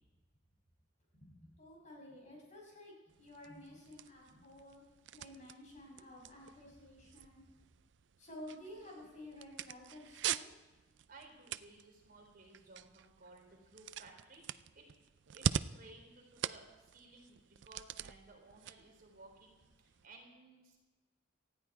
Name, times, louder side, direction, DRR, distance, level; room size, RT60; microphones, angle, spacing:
voice 1, 1.1-4.8 5.1-7.4 8.2-10.5, left 1 dB, 40° left, -2 dB, 6.2 m, -52 dB
sound 1, 3.1-20.1, right 8 dB, 70° right, 0.5 m, -44 dB
voice 2, 11.1-14.8 15.3-20.8, right 2 dB, 50° right, 1 dB, 4.0 m, -58 dB
19.0 x 14.0 x 4.6 m, 1.2 s
head